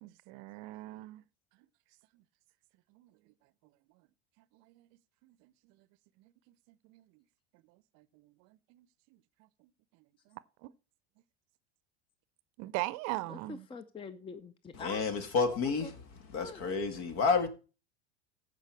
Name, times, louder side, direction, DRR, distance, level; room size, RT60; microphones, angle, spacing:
voice 1, 0.0-1.2 2.9-3.1 4.5-4.9 5.2-5.5 6.2-6.3 6.8-7.1 8.0-8.9 10.3-10.7 12.6-13.7, right 20 dB, 55° right, 0.6 m, -41 dB
voice 2, 13.3-15.0 15.5-15.9 16.4-16.7, left 4 dB, 15° left, 0.5 m, -45 dB
voice 3, 14.7-15.9 16.3-17.5, left 4 dB, 55° left, 2.0 m, -30 dB
14.5 x 5.2 x 4.6 m
hypercardioid pair, 95°, 33 cm